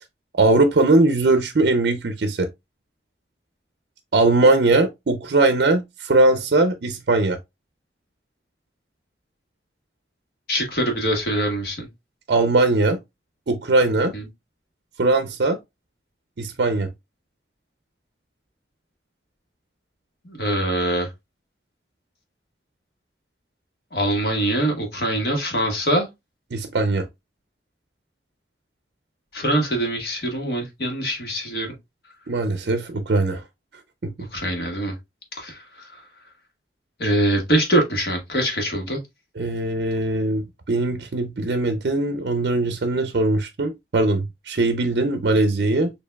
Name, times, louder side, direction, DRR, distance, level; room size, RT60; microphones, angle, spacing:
voice 1, 0.4-2.5 4.1-7.4 12.3-13.0 13.5-14.1 15.0-15.6 16.4-16.9 26.5-27.1 32.3-33.4 34.0-34.1 39.4-45.9, right 2 dB, 65° right, 0.5 m, -20 dB
voice 2, 10.5-11.9 14.1-14.3 20.2-21.1 23.9-26.1 29.3-31.7 34.3-34.9 35.4-36.0 37.0-39.0, right 1 dB, 60° left, 1.4 m, -23 dB
6.7 x 2.7 x 2.2 m
head